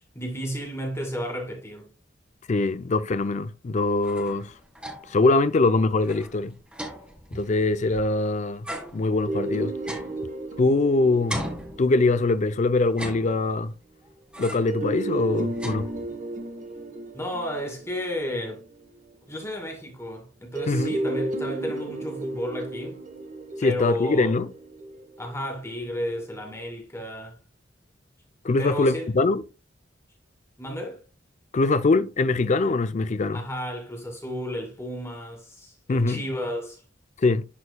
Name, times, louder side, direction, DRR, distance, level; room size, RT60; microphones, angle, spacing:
voice 1, 0.2-1.9 17.1-18.6 19.3-23.0 23.6-24.4 25.2-27.4 28.6-29.1 30.6-31.0 33.3-36.8, equal, 15° left, 2.2 m, -32 dB
voice 2, 2.5-4.5 5.1-6.5 7.3-8.7 8.9-9.7 10.6-11.4 11.8-13.7 14.4-15.9 20.7-21.0 23.6-24.5 28.4-29.4 31.5-33.4 35.9-36.2 37.2-37.5, left 3 dB, 40° left, 0.4 m, -23 dB
sound 1, 3.8-5.3 5.6-5.7 6.0-8.2 8.6-10.9 11.3-12.4 12.8-13.8 14.3-14.8 15.2-16.3, equal, 5° right, 1.6 m, -39 dB
sound 2, 9.3-13.1 14.7-19.1 20.6-25.7, right 2 dB, 45° right, 1.2 m, -34 dB
11.0 x 4.3 x 2.2 m
head